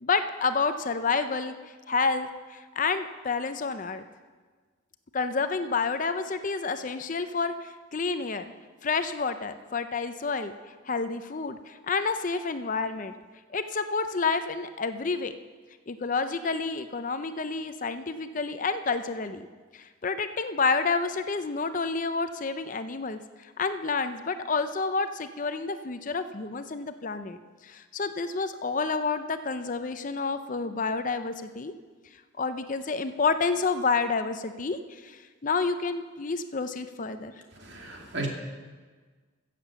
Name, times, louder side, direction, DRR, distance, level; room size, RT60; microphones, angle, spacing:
voice 1, 0.0-1.5 1.9-4.0 5.1-8.5 8.8-10.5 10.9-13.1 13.5-15.3 15.9-19.5 19.7-27.4 27.6-31.7 32.4-37.3, left 4 dB, 40° left, 10 dB, 0.5 m, -29 dB
voice 2, 37.5-38.3, right 2 dB, 55° right, 1 dB, 2.3 m, -35 dB
15.5 x 7.5 x 7.1 m, 1.4 s
head